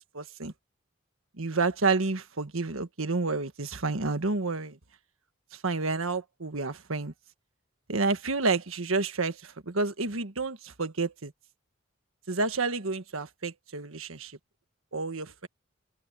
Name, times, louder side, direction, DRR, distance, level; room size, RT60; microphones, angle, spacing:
voice 1, 0.1-0.5 1.4-4.8 5.5-7.1 7.9-11.3 12.3-14.4 14.9-15.5, right 3 dB, 85° right, 1.5 m, -30 dB
open air
head